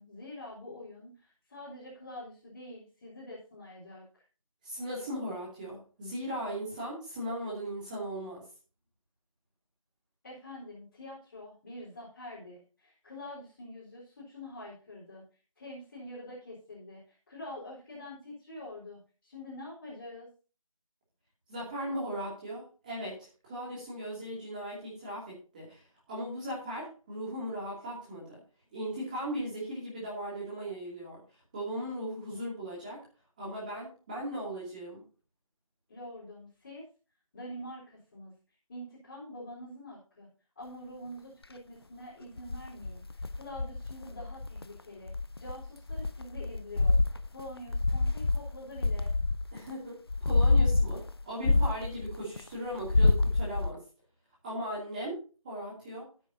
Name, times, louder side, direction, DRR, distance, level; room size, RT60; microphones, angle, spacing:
voice 1, 0.0-4.0 10.2-15.2 15.6-20.3 35.9-36.8 37.3-38.3 38.7-40.3 40.6-45.1 45.4-47.0 47.3-49.1, left 1 dB, 25° left, -7 dB, 4.1 m, -46 dB
voice 2, 4.6-8.4 21.5-23.2 23.4-28.4 28.7-31.2 31.5-33.0 33.4-35.0 49.5-53.8 54.4-55.2 55.4-56.0, equal, 15° right, -6 dB, 2.6 m, -38 dB
sound 1, 42.4-44.6 45.1-49.7 50.1-52.4 52.7-53.7, left 3 dB, 45° left, 0.6 m, -27 dB
15.5 x 9.2 x 2.8 m, 0.36 s
figure-of-eight pair, 170°, 18 cm